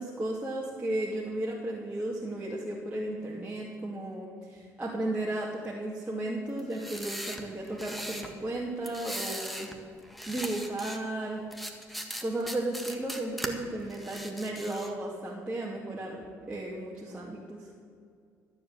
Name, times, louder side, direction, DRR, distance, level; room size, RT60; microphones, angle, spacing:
voice 1, 0.0-9.7 10.3-11.4 12.2-17.7, right 1 dB, 15° right, -5 dB, 2.4 m, -34 dB
sound 1, 6.6-8.3 8.8-9.8 10.0-11.0 11.5-13.5 13.9-14.9, equal, ahead, 1.7 m, -39 dB
13.0 x 7.6 x 7.8 m, 2.3 s
supercardioid pair, 70°, 7 cm